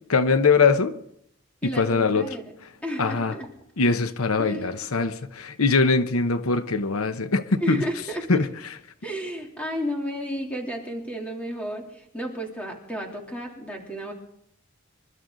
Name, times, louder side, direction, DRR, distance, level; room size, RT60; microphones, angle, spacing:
voice 1, 0.1-0.9 1.6-2.3 3.0-3.3 3.8-7.8 8.3-8.5, left 4 dB, 90° left, 0.9 m, -22 dB
voice 2, 1.6-2.4 2.8-3.5 4.4-4.8 7.6-8.5 9.0-14.1, equal, 5° left, 3.2 m, -32 dB
26.0 x 13.0 x 3.9 m
head